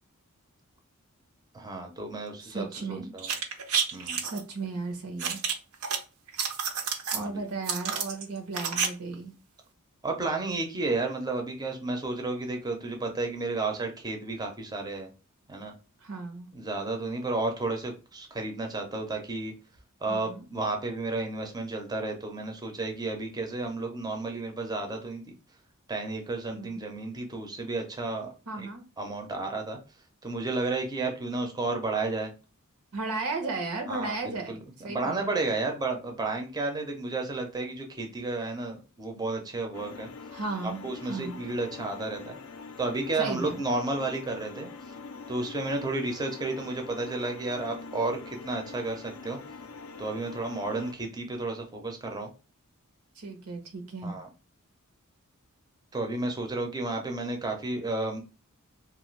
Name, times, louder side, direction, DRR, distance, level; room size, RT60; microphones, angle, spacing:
voice 1, 1.5-3.3 3.9-4.2 7.1-7.3 10.0-15.1 15.5-15.7 16.5-19.5 20.0-25.2 25.9-28.3 28.6-28.7 29.0-29.8 30.2-32.3 33.9-40.1 40.6-42.4 42.8-44.7 45.3-49.4 50.0-52.3 54.0-54.3 55.9-58.2, right 2 dB, 20° right, 3 dB, 0.5 m, -32 dB
voice 2, 2.5-3.1 4.2-5.4 7.1-9.3 16.0-16.5 20.1-20.4 26.5-26.8 28.5-28.8 32.9-34.5 34.8-35.2 40.3-41.4 43.2-43.6 53.2-54.1, right 3 dB, 90° right, 4 dB, 0.9 m, -35 dB
sound 1, 3.2-4.4 5.2-6.0 6.3-7.2 7.6-8.9 9.1-9.2, right 6 dB, 70° right, 0.5 m, -29 dB
sound 2, 39.7-50.9, left 4 dB, 70° left, 0.4 m, -44 dB
2.7 x 2.4 x 3.1 m, 0.32 s
head